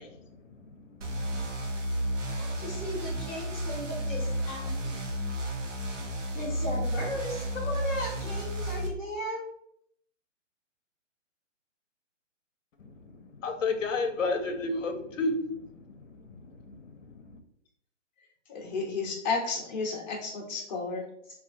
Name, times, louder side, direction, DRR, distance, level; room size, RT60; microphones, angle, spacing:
sound 1, 1.0-8.9, equal, 75° right, 0.8 m, -32 dB
voice 1, 2.3-5.0 6.3-9.4, equal, 5° left, -15 dB, 0.4 m, -36 dB
voice 2, 13.1-15.3 16.4-16.7, left 3 dB, 80° left, 5 dB, 0.6 m, -30 dB
voice 3, 18.5-21.0, left 4 dB, 35° left, 1 dB, 0.7 m, -32 dB
2.8 x 2.4 x 2.5 m, 0.72 s
hypercardioid pair, 135°, 38 cm